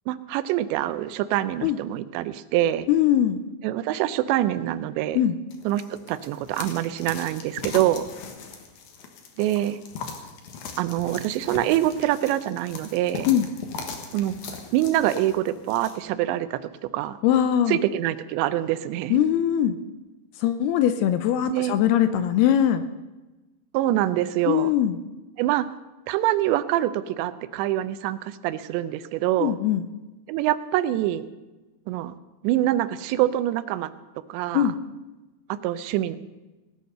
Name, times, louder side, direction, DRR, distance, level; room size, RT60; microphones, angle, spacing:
voice 1, 0.1-2.9 3.6-5.2 5.7-8.1 9.4-9.8 10.8-13.3 14.1-14.4 14.7-16.6 16.9-17.2 17.7-19.2 21.5-21.8 23.7-24.7 25.4-25.7 26.1-29.6 30.3-31.3 31.9-32.1 32.4-33.9 34.3-34.7 35.5-36.2, right 13 dB, 90° right, 14 dB, 3.0 m, -25 dB
voice 2, 2.9-3.4 5.2-5.4 13.3-13.5 17.2-17.8 19.1-19.8 20.4-22.8 24.5-25.0 29.4-29.8 34.5-34.7, left 10 dB, 80° left, 11 dB, 2.4 m, -21 dB
sound 1, 5.5-16.0, left 5 dB, 60° left, 2.3 m, -39 dB
18.5 x 9.4 x 6.7 m, 1.1 s
omnidirectional pair, 5.0 m